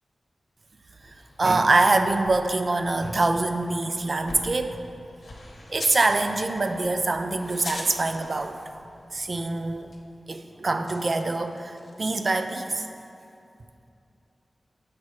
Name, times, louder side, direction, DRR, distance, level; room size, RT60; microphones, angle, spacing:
sound 1, 1.0-10.0, left 1 dB, 70° left, 1.1 m, -49 dB
voice 1, 1.4-4.8 5.7-8.6 9.1-9.9 10.3-12.9, right 2 dB, 50° right, 7 dB, 0.3 m, -24 dB
sound 2, 5.7-6.1 7.5-8.0 8.3-8.4 9.9-10.0 10.5-12.4, left 2 dB, 50° left, 0.6 m, -39 dB
7.4 x 5.6 x 3.1 m, 2.7 s
wide cardioid pair, 95°, 0 cm